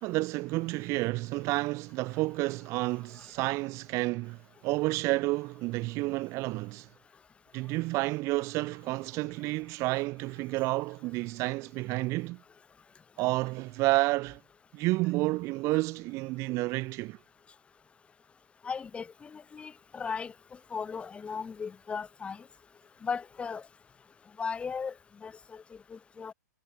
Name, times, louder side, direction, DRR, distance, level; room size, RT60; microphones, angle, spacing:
voice 1, 0.0-6.9 7.5-12.4 13.2-14.4 14.7-17.2, right 21 dB, 30° right, 2.5 m, -30 dB
voice 2, 18.6-20.3 20.7-22.4 23.0-23.6 24.4-24.9 25.2-25.6 25.9-26.3, left 5 dB, 10° left, 5.0 m, -36 dB
hypercardioid pair, 140°, 10 cm